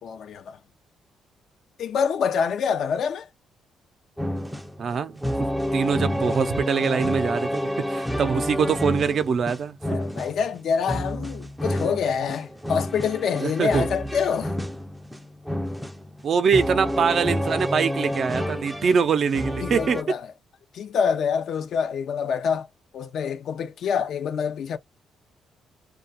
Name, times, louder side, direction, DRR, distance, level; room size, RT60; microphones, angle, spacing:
voice 1, 0.0-0.6 1.8-3.3 9.9-14.5 19.6-20.3 20.7-22.7 22.9-24.8, left 6 dB, 65° left, 0.6 m, -26 dB
sound 1, 4.2-20.0, equal, 5° right, 0.5 m, -29 dB
voice 2, 4.8-5.3 5.7-9.8 13.4-13.9 16.2-20.0, right 6 dB, 55° right, 0.5 m, -23 dB
2.3 x 2.2 x 2.6 m
cardioid pair, 90°, 0 cm